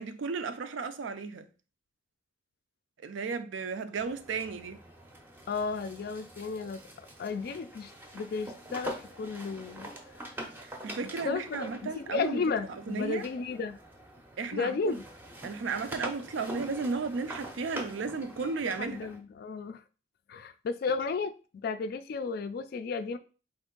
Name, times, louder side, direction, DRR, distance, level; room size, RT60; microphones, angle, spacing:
voice 1, 0.0-1.5 3.0-4.8 10.6-12.4 12.7-13.3 14.4-15.0 15.4-19.1, right 4 dB, 75° right, 0.4 m, -34 dB
sound 1, 4.0-14.5 14.8-19.2, right 1 dB, 10° right, 0.5 m, -45 dB
voice 2, 5.5-9.9 11.2-13.8 14.5-15.0 18.8-19.8 20.3-21.3 21.6-23.2, left 4 dB, 55° left, 0.3 m, -33 dB
3.6 x 2.6 x 3.7 m
head